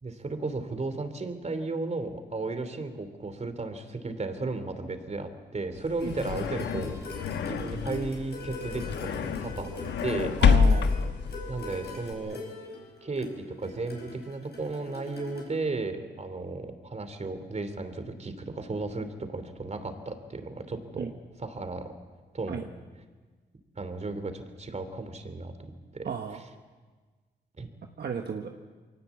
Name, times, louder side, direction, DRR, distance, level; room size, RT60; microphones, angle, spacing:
voice 1, 0.0-7.0 7.4-9.7 10.0-10.3 11.5-12.4 13.0-21.1 21.4-21.9 22.3-22.6 23.8-25.5 25.9-26.1 27.6-27.7, right 3 dB, 40° right, 9 dB, 3.1 m, -34 dB
sound 1, 5.8-12.1, left 6 dB, 85° left, 1.1 m, -27 dB
sound 2, 6.0-15.5, left 2 dB, 65° left, 6.0 m, -42 dB
voice 2, 10.4-10.9 21.0-21.1 22.5-22.6 26.0-26.4 28.0-28.6, right 7 dB, 65° right, 4 dB, 1.3 m, -33 dB
22.0 x 18.5 x 8.5 m, 1.4 s
cardioid pair, 65°, 18 cm